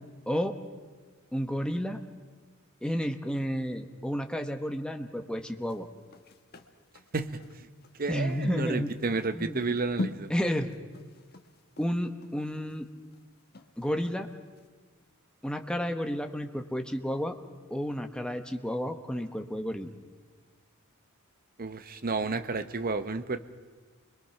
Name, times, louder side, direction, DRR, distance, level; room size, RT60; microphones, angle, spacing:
voice 1, 0.3-0.6 1.3-2.0 2.8-5.9 8.1-8.9 9.3-9.7 10.3-10.7 11.8-12.9 13.8-14.3 15.4-17.4 17.7-19.9, equal, 5° left, 5 dB, 1.1 m, -31 dB
sound 1, 5.6-14.2 14.6-14.7, left 2 dB, 45° left, 1.3 m, -42 dB
voice 2, 8.0-10.3 21.6-23.4, right 3 dB, 40° right, 10 dB, 0.9 m, -31 dB
28.5 x 22.0 x 5.8 m, 1.4 s
head